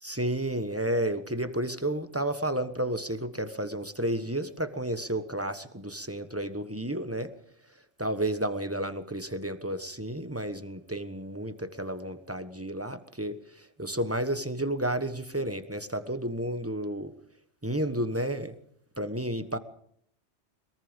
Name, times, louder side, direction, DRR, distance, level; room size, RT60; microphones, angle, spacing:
voice 1, 0.0-7.3 8.0-17.1 17.6-18.5 19.0-19.6, right 1 dB, 10° right, 10 dB, 1.3 m, -31 dB
22.5 x 22.0 x 5.3 m, 0.68 s
omnidirectional pair, 1.2 m